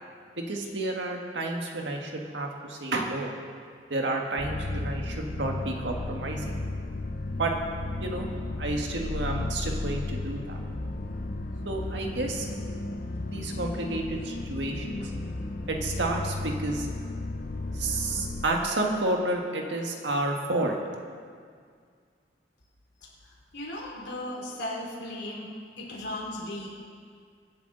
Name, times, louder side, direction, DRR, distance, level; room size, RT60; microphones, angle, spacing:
voice 1, 0.3-3.3 3.9-6.4 7.4-7.5 8.0-8.3 8.6-10.6 11.6-12.5 13.3-15.1 15.7-16.9 17.7-20.8, right 2 dB, 85° right, 1 dB, 1.6 m, -30 dB
sound 1, 4.4-18.5, left 2 dB, 55° left, 0.8 m, -34 dB
voice 2, 23.5-25.5 25.8-26.7, left 1 dB, 75° left, -4 dB, 3.0 m, -36 dB
24.5 x 8.3 x 3.9 m, 2.1 s
head